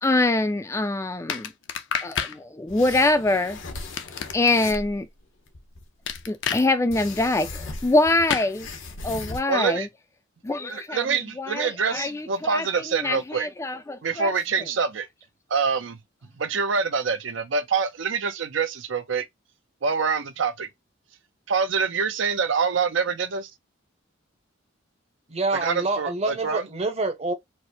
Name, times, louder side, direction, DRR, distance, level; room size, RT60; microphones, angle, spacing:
voice 1, 0.0-1.5 2.0-3.6 4.3-5.1 6.3-8.7 9.0-9.9 10.4-14.3, left 2 dB, 15° left, 0.3 m, -24 dB
sound 1, 1.3-2.4 3.8-4.8 6.1-6.6 8.3-8.5, left 7 dB, 65° left, 0.5 m, -29 dB
sound 2, 2.7-5.0 5.5-6.3 6.9-9.4, left 3 dB, 80° left, 1.0 m, -38 dB
voice 2, 9.5-9.9 10.7-13.5 14.0-15.1 15.5-16.0 16.4-19.3 19.8-20.7 21.5-23.5 25.5-26.6, right 5 dB, 70° right, 0.5 m, -25 dB
voice 3, 25.3-27.3, right 2 dB, 35° right, 0.8 m, -27 dB
4.5 x 2.1 x 2.7 m
head